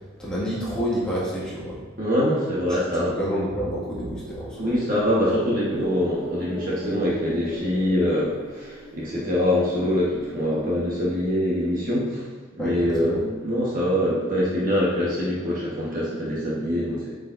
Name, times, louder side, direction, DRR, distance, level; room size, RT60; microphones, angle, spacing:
voice 1, 0.2-1.8 3.2-4.6 12.6-13.2, equal, 5° left, -9 dB, 2.1 m, -28 dB
voice 2, 2.0-3.2 4.6-12.3 12.6-17.1, equal, 45° right, -6 dB, 1.5 m, -24 dB
sound 1, 3.4-11.5, equal, 25° right, 2.4 m, -39 dB
8.4 x 6.9 x 2.7 m, 1.4 s
head